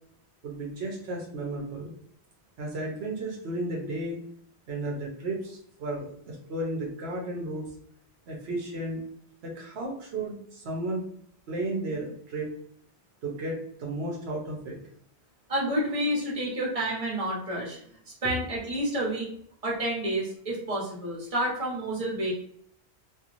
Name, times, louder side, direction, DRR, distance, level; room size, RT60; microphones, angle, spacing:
voice 1, 0.4-1.9 2.6-4.2 4.7-7.6 8.3-9.0 9.4-11.0 11.5-12.5 13.2-14.8 18.2-18.3, right 2 dB, 80° right, -1 dB, 1.0 m, -33 dB
voice 2, 15.5-17.8 18.2-19.3 19.6-22.3, right 1 dB, 35° right, -4 dB, 1.1 m, -29 dB
2.9 x 2.6 x 2.5 m, 0.67 s
omnidirectional pair, 1.1 m